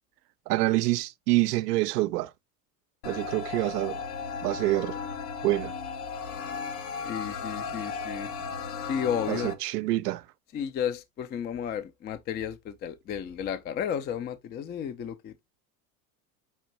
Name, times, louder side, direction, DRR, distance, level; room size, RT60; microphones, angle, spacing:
voice 1, 0.5-2.3 3.0-4.0 4.4-5.0 5.4-5.7 9.3-10.2, right 18 dB, 85° right, 0.5 m, -26 dB
sound 1, 3.0-9.5, left 5 dB, 80° left, 0.9 m, -35 dB
voice 2, 7.0-8.3 8.9-9.5 10.5-15.3, left 8 dB, 25° left, 0.3 m, -33 dB
5.4 x 2.5 x 2.9 m
hypercardioid pair, 85°, 46 cm